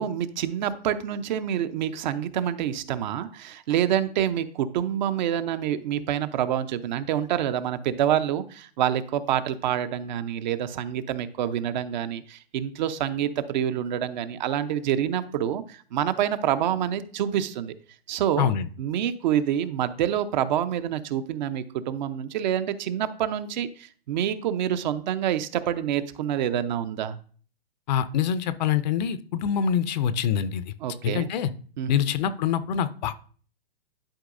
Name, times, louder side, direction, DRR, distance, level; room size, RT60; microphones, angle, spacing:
voice 1, 0.0-17.7 18.1-18.5 18.8-27.2 30.8-31.3 31.8-32.1, right 10 dB, 45° right, 12 dB, 0.7 m, -27 dB
voice 2, 27.9-30.7 31.0-31.5 31.9-33.1, left 8 dB, 45° left, 14 dB, 0.6 m, -25 dB
11.5 x 4.6 x 2.5 m, 0.44 s
hypercardioid pair, 130°, 31 cm